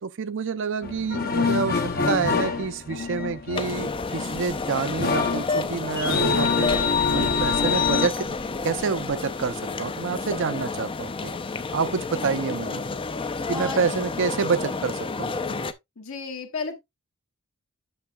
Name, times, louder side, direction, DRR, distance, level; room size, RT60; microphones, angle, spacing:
voice 1, 0.0-6.7 7.0-8.4 8.6-11.3 11.7-12.8 13.5-15.7, right 5 dB, 55° right, 0.5 m, -28 dB
sound 1, 0.8-8.1, left 5 dB, 45° left, 0.8 m, -25 dB
sound 2, 3.5-15.7, left 4 dB, 25° left, 0.5 m, -30 dB
voice 2, 13.5-13.9 16.0-16.8, left 4 dB, 60° left, 1.5 m, -33 dB
8.6 x 6.4 x 2.3 m
head